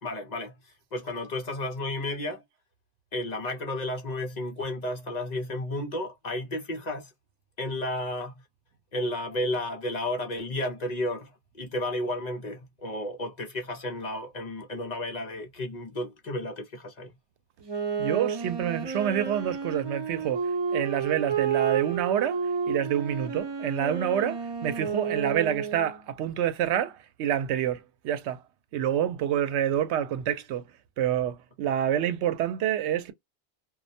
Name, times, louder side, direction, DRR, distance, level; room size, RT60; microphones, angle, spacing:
voice 1, 0.0-2.4 3.1-7.1 7.6-8.4 8.9-17.1, left 1 dB, 50° left, 0.6 m, -32 dB
Wind instrument woodwind instrument, 17.6-26.0, right 6 dB, 30° right, 0.6 m, -31 dB
voice 2, 18.0-28.4 28.7-30.7 31.0-33.1, right 10 dB, 85° right, 0.9 m, -28 dB
2.3 x 2.0 x 2.6 m
omnidirectional pair, 1.1 m